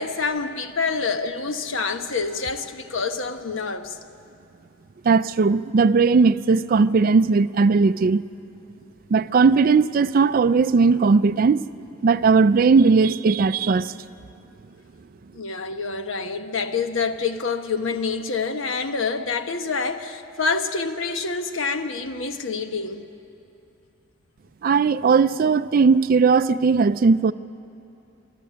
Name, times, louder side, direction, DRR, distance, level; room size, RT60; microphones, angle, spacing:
voice 1, 0.0-4.0 15.3-23.1, left 4 dB, 75° left, 1.0 m, -27 dB
voice 2, 5.0-8.2 9.1-11.6 12.0-13.9 24.6-27.3, right 4 dB, 45° right, 0.4 m, -18 dB
24.0 x 12.5 x 8.6 m
head